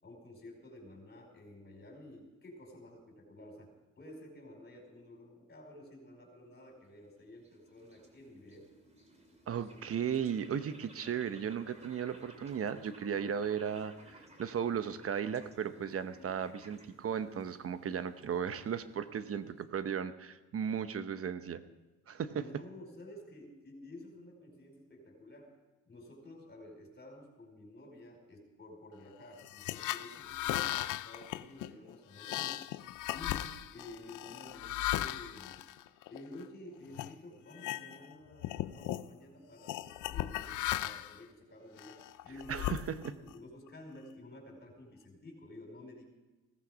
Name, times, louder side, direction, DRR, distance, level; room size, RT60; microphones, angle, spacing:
voice 1, 0.0-3.7 4.0-8.7 22.3-25.6 25.9-32.6 33.1-35.5 36.1-46.0, left 1 dB, 35° left, 2 dB, 5.0 m, -52 dB
sound 1, 6.6-20.1, right 1 dB, 20° right, 2.6 m, -58 dB
voice 2, 9.5-21.6 22.1-22.4 42.5-43.1, right 8 dB, 50° right, 12 dB, 0.9 m, -36 dB
sound 2, 29.4-36.4 36.9-37.1 37.5-38.1 38.4-39.1 39.7-41.2 41.8-43.3, left 14 dB, 85° left, 0.6 m, -37 dB
16.5 x 14.5 x 5.1 m, 1.1 s
cardioid pair, 90°, 30 cm